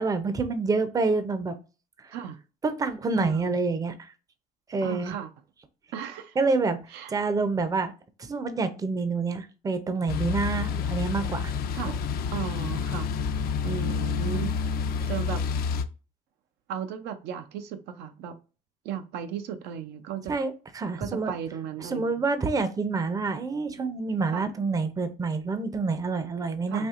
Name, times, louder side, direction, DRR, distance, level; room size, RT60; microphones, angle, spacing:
voice 1, 0.0-1.6 2.0-2.2 2.6-4.1 4.7-5.2 6.4-6.8 7.1-7.9 8.2-11.5 14.1-14.4 20.3-21.3 21.8-26.9, right 4 dB, 20° right, 0.5 m, -27 dB
voice 2, 3.2-3.6 4.8-5.3 5.9-6.4 6.9-7.1 11.2-11.3 11.7-13.1 13.6-14.5 15.1-15.4 16.7-18.3 18.8-20.3 21.0-22.2 23.7-23.8 24.3-24.5 26.7-26.9, right 8 dB, 90° right, 0.5 m, -35 dB
sound 1, 10.1-15.8, left 6 dB, 65° left, 0.4 m, -29 dB
4.3 x 2.8 x 2.4 m
cardioid pair, 110°, 17 cm